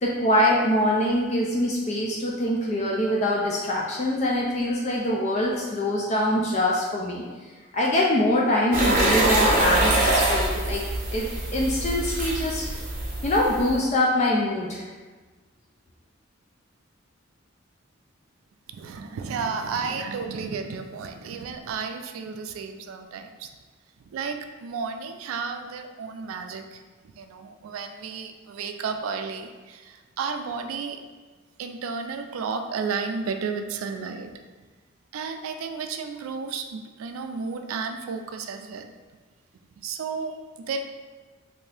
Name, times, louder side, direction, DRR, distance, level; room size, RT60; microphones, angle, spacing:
voice 1, 0.0-7.2 7.7-10.8 11.1-12.7 13.2-14.9, left 1 dB, 35° left, -3 dB, 0.3 m, -24 dB
sound 1, 8.7-13.8, right 1 dB, 40° right, 0.7 m, -24 dB
voice 2, 18.7-23.5 24.1-26.8 27.2-31.0 31.6-34.4 35.1-38.9 39.8-40.8, right 5 dB, 90° right, 7 dB, 0.3 m, -32 dB
2.7 x 2.6 x 3.2 m, 1.3 s
head